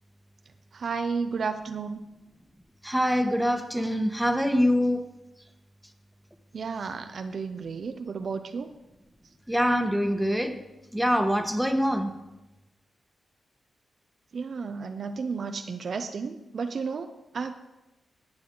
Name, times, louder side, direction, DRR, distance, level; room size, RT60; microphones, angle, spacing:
voice 1, 0.7-2.0 6.5-8.7 14.3-17.6, right 5 dB, 65° right, 8 dB, 0.6 m, -32 dB
voice 2, 2.8-5.0 9.5-10.6 10.9-12.1, equal, ahead, 5 dB, 1.3 m, -24 dB
17.5 x 6.2 x 3.9 m, 0.98 s
cardioid pair, 55°, 0 cm